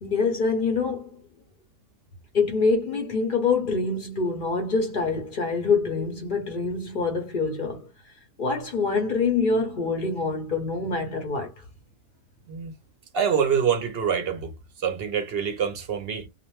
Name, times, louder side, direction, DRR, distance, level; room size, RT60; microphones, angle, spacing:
voice 1, 0.0-1.2 2.3-7.9 8.4-11.5, left 4 dB, 45° left, 0.7 m, -25 dB
voice 2, 13.1-14.5 14.8-16.3, right 7 dB, 60° right, 0.7 m, -25 dB
2.5 x 2.1 x 3.0 m
omnidirectional pair, 1.4 m